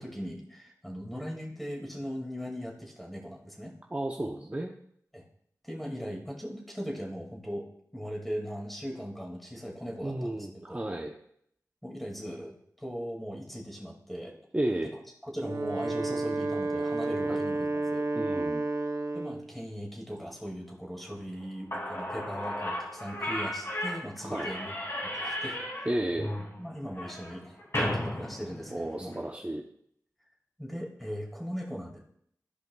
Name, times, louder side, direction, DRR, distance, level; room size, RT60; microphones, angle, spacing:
voice 1, 0.0-3.8 5.1-5.2 5.6-10.8 11.8-14.3 15.3-18.0 19.1-25.9 26.4-29.1 30.6-32.0, equal, ahead, -1 dB, 2.2 m, -39 dB
voice 2, 3.9-4.7 10.0-11.1 14.5-14.9 17.3-17.4 18.1-18.6 24.2-24.5 25.9-26.4 28.7-29.6, right 1 dB, 20° right, 1 dB, 0.7 m, -32 dB
Wind instrument woodwind instrument, 15.3-19.5, right 2 dB, 65° right, 0.7 m, -31 dB
Slam / Squeak, 21.4-21.5 21.7-29.2, left 1 dB, 45° left, 2.6 m, -35 dB
13.5 x 5.2 x 2.3 m, 0.68 s
wide cardioid pair, 60°, 6 cm